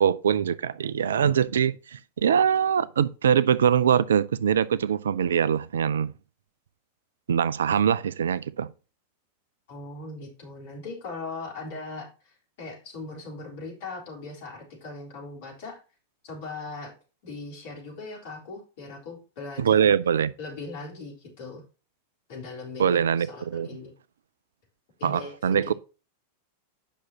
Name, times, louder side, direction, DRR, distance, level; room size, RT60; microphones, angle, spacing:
voice 1, 0.0-6.1 7.3-8.7 19.6-20.3 22.8-23.7 25.0-25.7, right 8 dB, 65° right, 0.4 m, -23 dB
voice 2, 9.7-15.8 16.2-16.9 17.2-19.9 20.4-21.6 22.3-23.9 25.0-25.7, left 3 dB, 50° left, 3.7 m, -39 dB
10.0 x 6.1 x 2.8 m
figure-of-eight pair, 90°, 0 cm